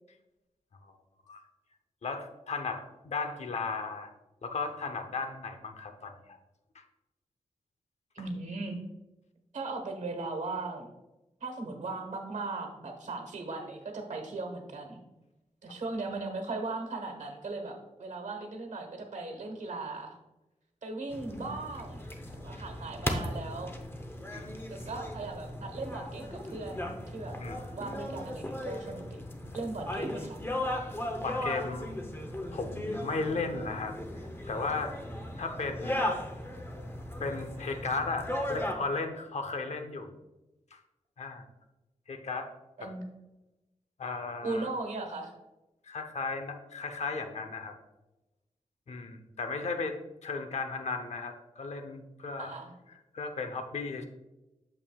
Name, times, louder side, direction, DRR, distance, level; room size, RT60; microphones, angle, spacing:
voice 1, 2.0-4.1 4.4-6.1 6.7-6.8 24.3-24.5 27.4-27.6 31.2-31.9 32.5-34.9 35.4-36.1 37.2-40.2 40.7-40.8 41.2-41.4 42.1-42.5 42.8-42.9 44.0-44.7 45.8-47.7 48.9-50.0 50.2-52.5 53.1-54.0, left 4 dB, 60° left, 6 dB, 0.8 m, -35 dB
voice 2, 8.1-8.8 9.5-10.9 11.4-15.0 15.6-20.2 20.8-22.0 22.3-23.7 24.7-27.4 27.7-29.2 29.5-30.4 42.8-43.0 44.4-45.3 52.4-52.7, right 3 dB, 75° right, 4 dB, 1.3 m, -38 dB
sound 1, 21.1-38.8, left 1 dB, 20° left, 0.8 m, -37 dB
8.7 x 7.0 x 2.3 m, 1.0 s
wide cardioid pair, 170°, 13 cm